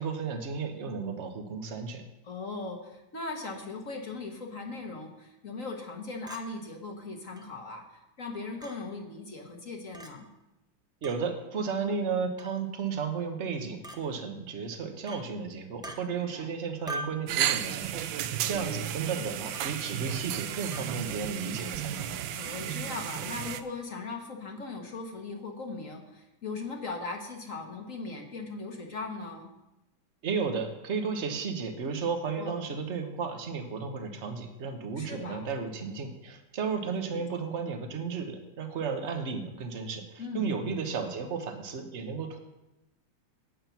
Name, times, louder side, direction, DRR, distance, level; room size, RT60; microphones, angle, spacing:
voice 1, 0.0-2.0 11.0-22.1 30.2-42.4, right 5 dB, 40° right, 6 dB, 1.3 m, -33 dB
voice 2, 2.2-10.3 16.1-16.5 22.3-29.5 32.4-32.7 35.0-35.5 37.0-37.2 40.2-40.5, left 3 dB, 45° left, 3 dB, 1.6 m, -39 dB
Chink clink, 6.3-6.4 7.4-7.5 8.6-8.8 9.9-10.1 11.0-11.2 12.4-12.6 13.8-14.0 15.1-15.2 15.8-16.0 16.9-17.2 18.4-18.6 19.5-19.8 20.7-20.9, right 2 dB, 5° right, 0.3 m, -40 dB
sound 1, 17.3-23.6, right 10 dB, 80° right, 1.4 m, -33 dB
9.1 x 8.6 x 5.9 m, 0.95 s
omnidirectional pair, 2.1 m